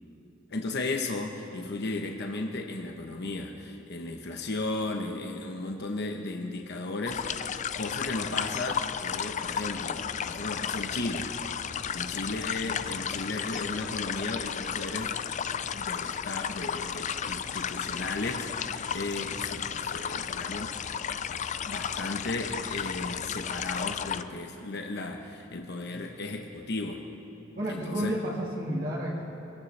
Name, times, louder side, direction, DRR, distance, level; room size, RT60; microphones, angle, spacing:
voice 1, 0.5-11.3 11.6-15.1 15.7-20.7 21.6-27.0 27.7-28.1, left 2 dB, 55° left, 3 dB, 1.0 m, -35 dB
sound 1, 7.1-24.2, left 8 dB, 35° left, 0.4 m, -33 dB
voice 2, 27.6-29.2, equal, 45° right, -5 dB, 1.8 m, -31 dB
23.0 x 16.0 x 3.3 m, 2.9 s
head